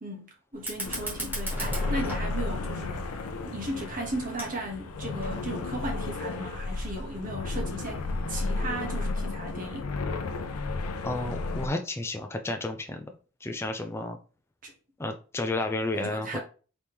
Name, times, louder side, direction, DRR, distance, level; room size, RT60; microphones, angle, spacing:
voice 1, 0.0-9.9 14.6-14.7 15.9-16.4, right 1 dB, 40° right, 1.1 m, -36 dB
Fire, 0.5-5.5, right 1 dB, 10° right, 1.4 m, -39 dB
sound 1, 0.8-11.7, left 3 dB, 85° left, 0.5 m, -33 dB
voice 2, 11.0-13.1 13.4-14.2 15.0-16.4, left 2 dB, 10° left, 0.3 m, -31 dB
4.1 x 3.1 x 3.4 m
head